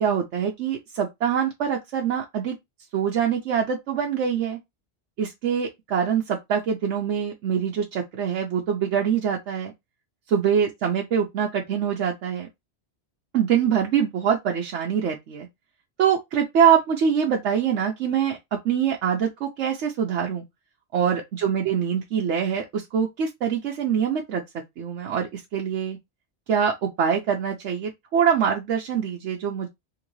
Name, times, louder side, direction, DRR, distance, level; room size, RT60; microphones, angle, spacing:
voice 1, 0.0-2.5 2.9-4.6 5.2-9.7 10.3-12.5 13.3-15.5 16.0-18.4 18.6-20.4 20.9-24.4 24.8-26.0 26.5-29.7, right 8 dB, 85° right, 1.0 m, -24 dB
3.7 x 2.9 x 3.1 m
omnidirectional pair, 1.2 m